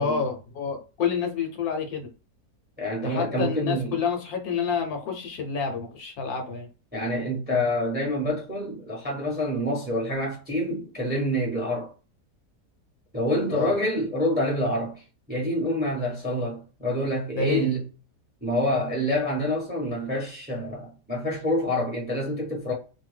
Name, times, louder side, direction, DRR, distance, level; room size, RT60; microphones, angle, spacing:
voice 1, 0.0-2.1 3.0-6.7 13.5-13.7 17.4-17.7, left 6 dB, 70° left, 1.1 m, -28 dB
voice 2, 2.8-4.0 6.9-11.9 13.1-14.9 15.3-17.8 18.4-22.7, equal, 10° right, 0.7 m, -27 dB
2.7 x 2.2 x 3.2 m
omnidirectional pair, 1.8 m